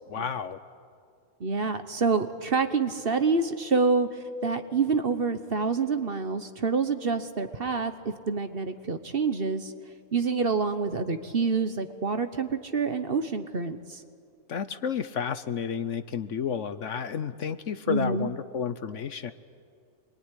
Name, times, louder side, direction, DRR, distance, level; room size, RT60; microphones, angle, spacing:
voice 1, 0.1-0.6 14.5-19.3, left 7 dB, 60° left, 12 dB, 1.1 m, -31 dB
voice 2, 1.4-9.7 10.1-14.0 17.9-18.3, right 4 dB, 40° right, 9 dB, 1.3 m, -27 dB
26.0 x 22.5 x 10.0 m, 2.3 s
omnidirectional pair, 1.5 m